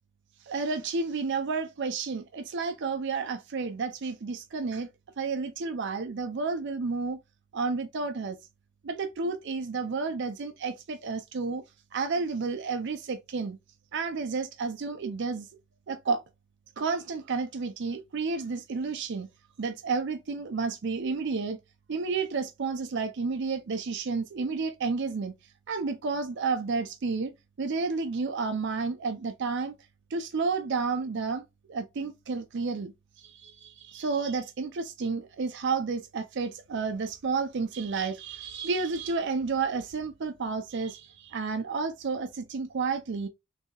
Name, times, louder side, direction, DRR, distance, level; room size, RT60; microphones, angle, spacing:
voice 1, 0.4-4.9 5.2-7.2 7.5-8.4 8.8-11.6 11.9-13.6 13.9-15.5 15.9-16.2 16.8-19.3 19.6-21.6 21.9-25.3 25.7-27.3 27.6-29.7 30.1-43.3, right 4 dB, 55° right, 0.5 m, -31 dB
6.5 x 2.7 x 2.3 m
head